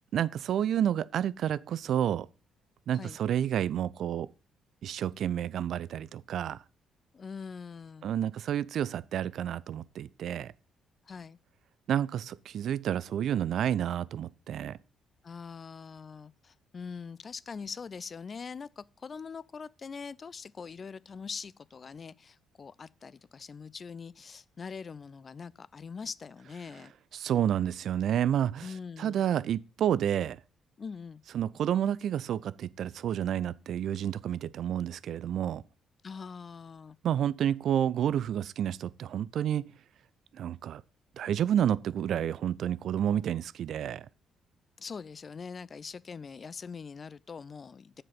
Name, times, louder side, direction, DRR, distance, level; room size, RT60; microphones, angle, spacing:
voice 1, 0.1-2.3 2.9-4.3 4.8-6.6 8.0-10.5 11.9-14.8 27.1-28.7 29.0-30.4 31.3-35.6 37.0-39.7 40.3-40.8 41.2-44.1, right 10 dB, 55° right, 0.4 m, -30 dB
voice 2, 7.1-8.1 11.1-11.4 15.2-26.9 28.6-29.2 30.8-31.2 36.0-37.0 44.8-48.0, left 5 dB, 35° left, 0.4 m, -43 dB
7.4 x 6.6 x 5.6 m
figure-of-eight pair, 45°, 0 cm